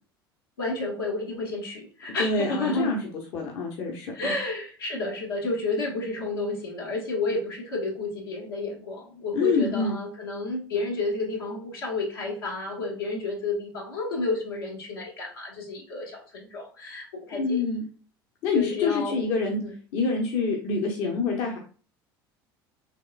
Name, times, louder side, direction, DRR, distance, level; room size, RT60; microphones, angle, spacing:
voice 1, 0.6-2.9 4.1-17.6 18.5-19.2 19.6-19.7, left 2 dB, 85° left, -2 dB, 1.0 m, -31 dB
voice 2, 2.2-3.0 3.3-4.3 9.3-9.9 17.4-17.9 18.4-19.6 19.9-21.6, left 4 dB, 60° left, 1 dB, 0.8 m, -26 dB
3.4 x 3.1 x 2.4 m, 0.40 s
hypercardioid pair, 70°, 12 cm